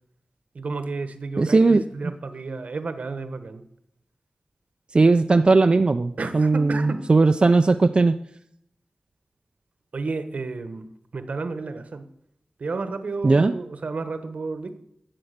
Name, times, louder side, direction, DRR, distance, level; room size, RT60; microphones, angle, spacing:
voice 1, 0.5-3.6 6.2-7.0 9.9-10.8 11.1-12.0 12.6-14.8, right 3 dB, 70° right, 10 dB, 1.1 m, -31 dB
voice 2, 1.4-2.1 4.9-8.1 13.2-13.5, right 3 dB, 40° right, 7 dB, 0.4 m, -18 dB
11.5 x 7.7 x 6.6 m, 0.75 s
wide cardioid pair, 80°, 2 cm